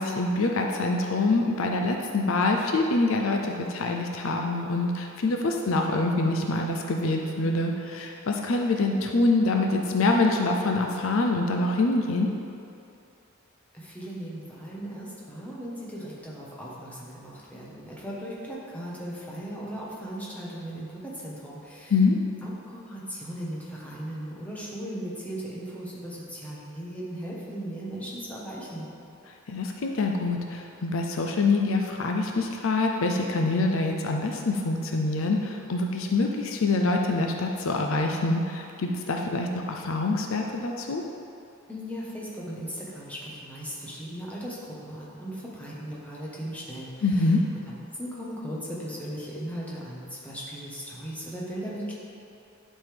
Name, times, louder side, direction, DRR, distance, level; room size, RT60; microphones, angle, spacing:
voice 1, 0.0-12.3 21.9-22.2 29.5-41.0 47.0-47.4, left 2 dB, 60° left, 2 dB, 0.5 m, -25 dB
voice 2, 13.7-21.9 22.4-28.9 41.7-47.4 47.7-51.9, equal, 5° left, -6 dB, 1.3 m, -37 dB
11.0 x 5.5 x 3.5 m, 2.6 s
head